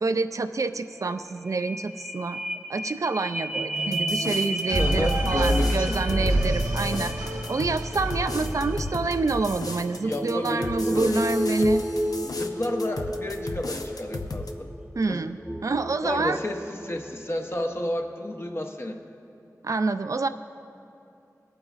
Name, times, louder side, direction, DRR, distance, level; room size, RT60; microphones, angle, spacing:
voice 1, 0.0-2.4 2.7-7.1 7.5-11.8 15.0-16.4 19.6-20.3, right 3 dB, 60° right, 10 dB, 0.3 m, -27 dB
sound 1, 0.7-0.8 1.0-17.0 17.5-17.6, equal, 15° right, 0.7 m, -32 dB
sound 2, 3.9-14.5, left 3 dB, 75° left, 0.6 m, -36 dB
sound 3, 4.7-9.5, right 1 dB, 90° right, 1.0 m, -27 dB
voice 2, 4.8-6.0 10.0-11.2 12.2-14.7 15.1-15.2 16.0-19.0, left 1 dB, 40° left, 3 dB, 0.8 m, -31 dB
21.5 x 8.7 x 2.4 m, 2.6 s
wide cardioid pair, 70°, 6 cm